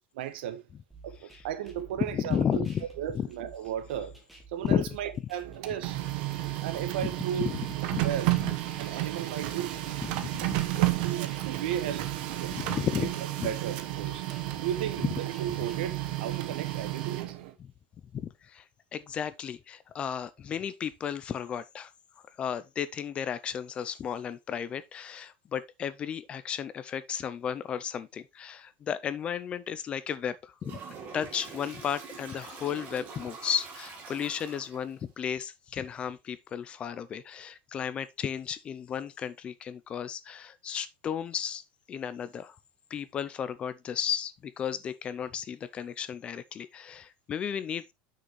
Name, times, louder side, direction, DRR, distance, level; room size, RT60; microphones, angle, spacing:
voice 1, 0.2-0.6 1.0-2.6 3.0-4.2 4.5-6.0 6.6-7.5 8.0-8.3 8.8-9.9 10.8-12.5 12.9-13.1 13.4-14.3 14.6-17.4, right 10 dB, 85° right, 1.2 m, -35 dB
sound 1, 0.9-16.9, right 3 dB, ahead, 1.7 m, -51 dB
voice 2, 2.1-2.8 3.1-3.3 4.6-4.9 7.5-7.7 7.9-8.0 8.4-8.5 8.8-9.0 10.0-10.6 12.5-13.1 13.4-13.5 18.1-18.7 18.9-21.9 22.4-30.8 31.1-41.6 41.9-42.6 42.9-47.9, left 8 dB, 20° left, 0.4 m, -34 dB
Printer, 5.4-17.5, right 16 dB, 60° right, 1.1 m, -32 dB
Toilet flush, 30.6-35.0, right 4 dB, 30° right, 2.3 m, -44 dB
7.7 x 6.3 x 3.1 m
supercardioid pair, 175°, 5 cm